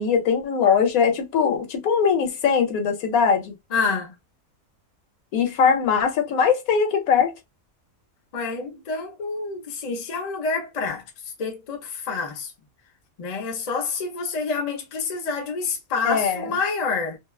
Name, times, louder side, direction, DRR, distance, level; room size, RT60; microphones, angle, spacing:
voice 1, 0.0-3.6 5.3-7.3 16.0-16.6, left 6 dB, 80° left, 1.1 m, -21 dB
voice 2, 3.7-4.1 8.3-11.0 11.4-12.5 13.2-17.2, left 4 dB, 45° left, 0.5 m, -28 dB
2.7 x 2.1 x 2.3 m
omnidirectional pair, 1.5 m